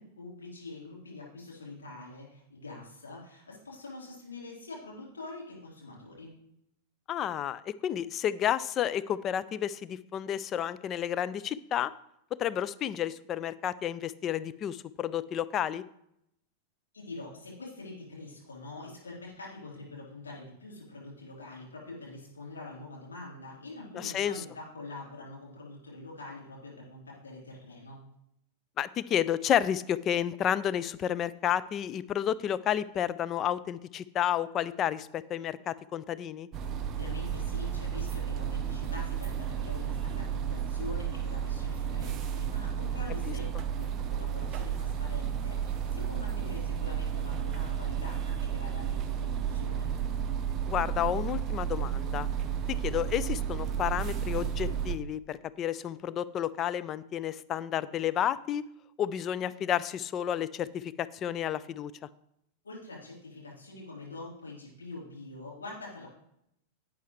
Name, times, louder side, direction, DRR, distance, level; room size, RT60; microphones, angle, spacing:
voice 1, 0.2-6.3 16.9-28.0 36.9-43.4 43.7-49.9 62.6-66.1, left 2 dB, 70° left, -4 dB, 3.7 m, -45 dB
voice 2, 7.1-11.9 12.4-15.8 23.9-24.4 28.8-36.5 43.3-43.4 50.7-52.3 52.7-58.6 59.0-61.9, left 10 dB, 30° left, 15 dB, 0.4 m, -31 dB
sound 1, 36.5-55.0, right 8 dB, 30° right, 0.7 m, -32 dB
11.0 x 8.5 x 3.1 m, 0.77 s
figure-of-eight pair, 90°, 0 cm